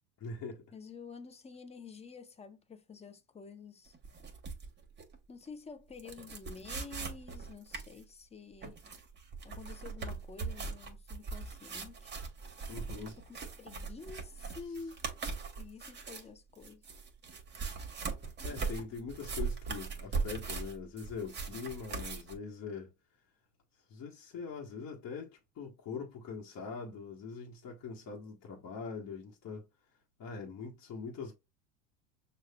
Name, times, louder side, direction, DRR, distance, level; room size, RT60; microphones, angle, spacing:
voice 1, 0.2-0.6 12.7-13.2 18.4-22.9 23.9-29.7 30.2-31.3, left 5 dB, 40° left, 1.3 m, -42 dB
voice 2, 0.7-4.0 5.3-8.8 9.4-12.2 12.9-15.0 15.6-16.8 18.4-18.6, left 5 dB, 15° left, 0.6 m, -49 dB
sound 1, 3.9-5.2 5.4-5.5 6.0-8.0 8.6-16.2 16.5-22.4, right 4 dB, 25° right, 1.4 m, -40 dB
6.4 x 2.4 x 2.3 m
hypercardioid pair, 95°, 42 cm